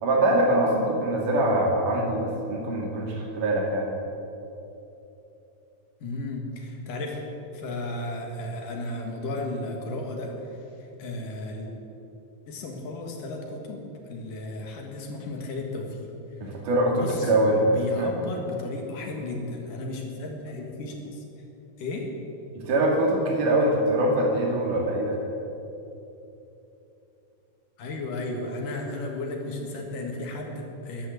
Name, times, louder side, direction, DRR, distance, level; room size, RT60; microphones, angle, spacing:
voice 1, 0.0-4.0 16.4-18.1 22.6-25.2, right 1 dB, 65° right, -1 dB, 3.8 m, -23 dB
voice 2, 6.0-7.2 7.5-10.6 11.0-11.7 12.5-16.1 16.9-17.3 17.6-21.2 21.8-22.1 27.8-31.1, left 2 dB, 65° left, 1 dB, 3.3 m, -34 dB
13.5 x 11.5 x 7.8 m, 3.0 s
omnidirectional pair, 4.2 m